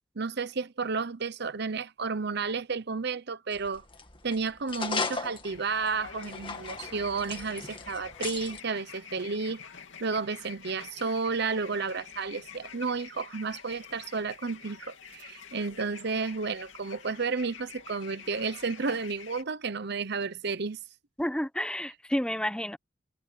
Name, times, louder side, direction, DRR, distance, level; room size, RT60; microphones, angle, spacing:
voice 1, 0.2-3.8 4.2-9.6 10.0-20.8, right 4 dB, 60° right, 1.0 m, -32 dB
sound 1, 3.5-8.6, left 4 dB, 25° left, 2.0 m, -37 dB
sound 2, 5.5-19.4, left 7 dB, 75° left, 2.8 m, -47 dB
voice 2, 21.2-22.8, equal, 5° left, 1.1 m, -30 dB
head